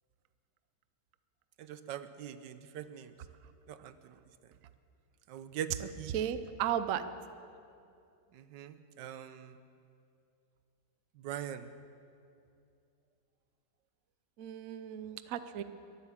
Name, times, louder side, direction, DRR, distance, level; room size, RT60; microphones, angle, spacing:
voice 1, 1.6-3.1 3.7-3.9 5.3-6.1 8.3-9.5 11.2-11.7, right 9 dB, 90° right, 12 dB, 1.4 m, -42 dB
voice 2, 6.1-7.0 14.4-15.6, right 10 dB, 60° right, 11 dB, 1.0 m, -34 dB
22.5 x 8.5 x 7.3 m, 2.5 s
omnidirectional pair, 1.8 m